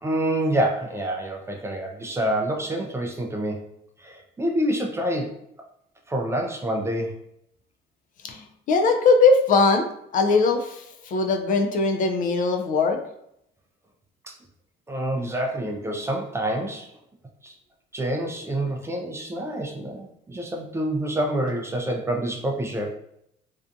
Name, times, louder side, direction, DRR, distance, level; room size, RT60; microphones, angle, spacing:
voice 1, 0.0-3.6 4.0-5.3 6.1-7.2 14.9-16.9 17.4-17.5 17.9-22.9, right 1 dB, 15° right, 2 dB, 0.4 m, -27 dB
voice 2, 8.2-13.0, left 4 dB, 50° left, 4 dB, 0.4 m, -21 dB
2.5 x 2.3 x 2.5 m, 0.76 s
cardioid pair, 110°, 17 cm